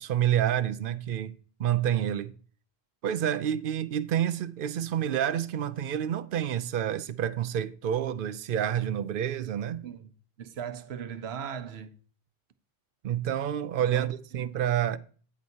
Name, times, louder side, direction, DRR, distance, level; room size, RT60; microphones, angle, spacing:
voice 1, 0.0-1.3 1.6-2.3 3.0-9.8 13.0-15.0, right 10 dB, 65° right, 0.7 m, -28 dB
voice 2, 10.4-12.0 13.8-14.1 14.3-14.6, right 8 dB, 80° right, 1.0 m, -38 dB
10.5 x 9.5 x 2.8 m
omnidirectional pair, 1.1 m